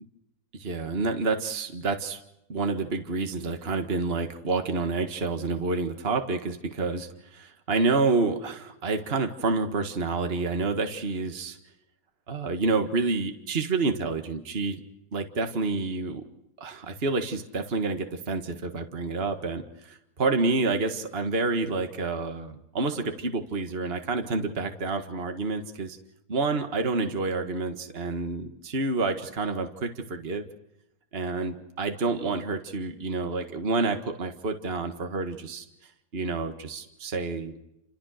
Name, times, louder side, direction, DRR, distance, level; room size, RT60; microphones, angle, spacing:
voice 1, 0.5-2.2 2.5-11.6 12.3-14.8 15.1-16.2 16.6-26.0 26.3-30.5 31.1-35.7 36.1-37.5, right 3 dB, 35° right, 6 dB, 1.9 m, -28 dB
29.5 x 26.0 x 6.6 m, 0.85 s
omnidirectional pair, 1.8 m